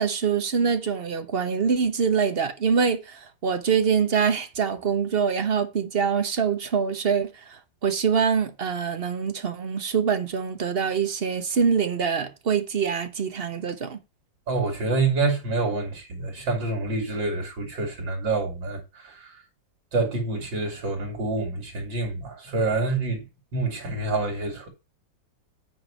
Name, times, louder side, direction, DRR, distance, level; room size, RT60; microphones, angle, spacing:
voice 1, 0.0-14.0, right 6 dB, 40° right, 1.0 m, -24 dB
voice 2, 14.5-18.8 19.2-19.3 19.9-23.2 23.5-24.7, right 3 dB, 75° right, 3.4 m, -27 dB
9.0 x 5.0 x 5.6 m
omnidirectional pair, 2.0 m